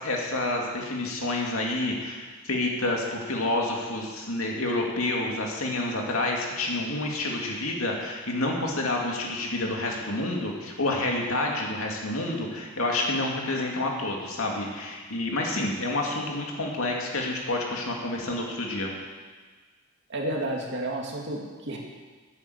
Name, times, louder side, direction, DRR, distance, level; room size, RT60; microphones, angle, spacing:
voice 1, 0.0-18.9, left 2 dB, 80° left, 0 dB, 2.4 m, -29 dB
voice 2, 20.1-21.8, right 1 dB, 60° right, -1 dB, 2.3 m, -31 dB
9.8 x 9.0 x 8.0 m, 1.4 s
head